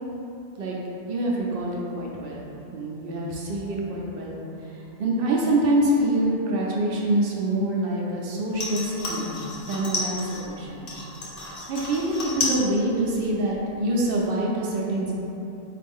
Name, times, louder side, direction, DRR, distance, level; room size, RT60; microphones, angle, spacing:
voice 1, 1.1-2.4 2.7-9.4 9.6-10.9 11.7-15.1, right 1 dB, 60° right, -4 dB, 0.6 m, -25 dB
sound 1, 8.5-10.5 10.9-12.7 12.9-13.5 13.9-14.0, left 2 dB, 50° left, 0.8 m, -31 dB
4.2 x 2.5 x 3.5 m, 2.9 s
omnidirectional pair, 1.4 m